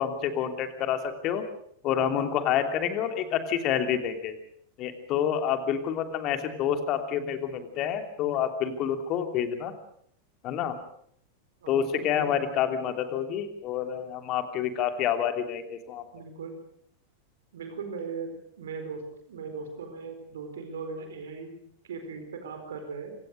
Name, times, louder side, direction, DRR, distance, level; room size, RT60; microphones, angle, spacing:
voice 1, 0.0-1.4 1.8-4.4 4.8-9.7 10.4-10.8 11.7-16.0, left 9 dB, 35° left, 7 dB, 2.9 m, -28 dB
voice 2, 11.6-12.3 16.1-16.6 17.5-19.0 19.3-23.2, right 5 dB, 60° right, 6 dB, 4.3 m, -39 dB
26.5 x 17.5 x 6.5 m, 0.66 s
figure-of-eight pair, 90°, 0 cm